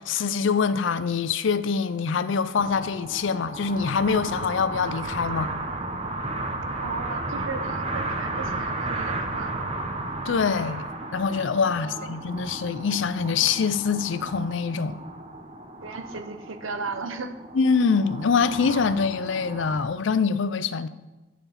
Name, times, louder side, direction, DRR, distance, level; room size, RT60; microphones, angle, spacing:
voice 1, 0.0-5.5 10.2-10.9 11.1-15.0 17.5-20.9, left 5 dB, 70° left, 0.5 m, -24 dB
sound 1, 2.6-19.8, right 2 dB, 30° right, 0.9 m, -34 dB
voice 2, 6.8-9.5 11.7-12.2 15.8-17.3, right 4 dB, 85° right, 0.9 m, -35 dB
12.0 x 4.7 x 5.7 m
head